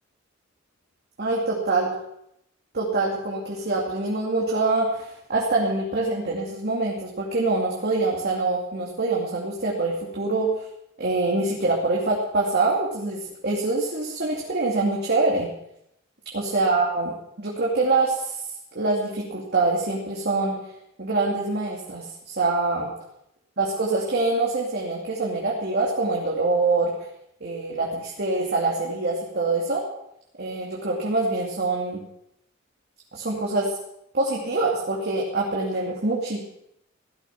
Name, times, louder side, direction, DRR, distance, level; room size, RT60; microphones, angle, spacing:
voice 1, 1.2-1.9 2.7-10.7 11.0-15.5 16.3-18.4 18.7-20.6 21.0-22.9 23.6-26.9 27.4-29.9 30.4-32.0 33.1-33.7 34.1-36.4, right 3 dB, 55° right, -3 dB, 2.6 m, -25 dB
16.5 x 13.0 x 5.8 m, 0.79 s
head